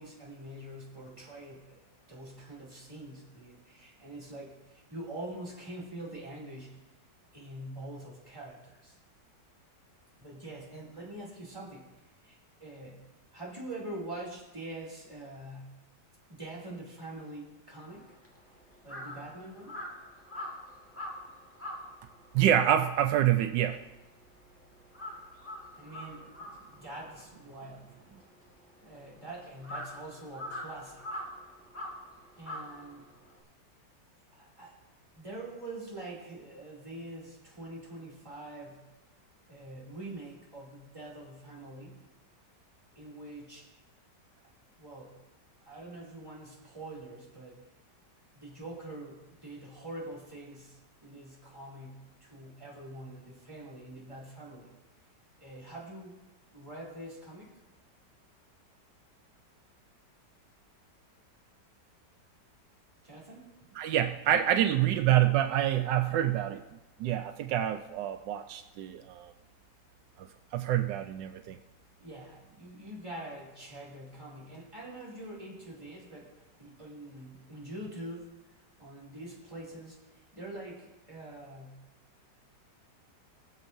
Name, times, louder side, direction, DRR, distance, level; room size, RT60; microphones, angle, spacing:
voice 1, 0.0-1.8 2.1-6.8 7.3-9.0 10.2-11.9 12.2-13.0 13.3-15.8 16.3-18.1 18.8-19.8 25.8-26.3 26.7-28.2 28.8-31.2 32.4-33.1 34.3-34.8 35.1-38.9 39.5-42.0 42.9-43.7 44.8-45.2 45.6-47.6 48.3-54.7 55.4-56.2 56.5-57.5 63.0-63.5 72.0-81.8, right 1 dB, 15° right, -5 dB, 2.8 m, -45 dB
Crow, 17.9-24.5 24.8-33.4, left 1 dB, 10° left, 1.5 m, -44 dB
voice 2, 22.3-23.8 63.8-66.6 67.0-69.3 70.2-70.3 70.5-71.6, right 11 dB, 85° right, 8 dB, 1.2 m, -27 dB
21.0 x 7.3 x 2.7 m, 0.99 s
omnidirectional pair, 1.9 m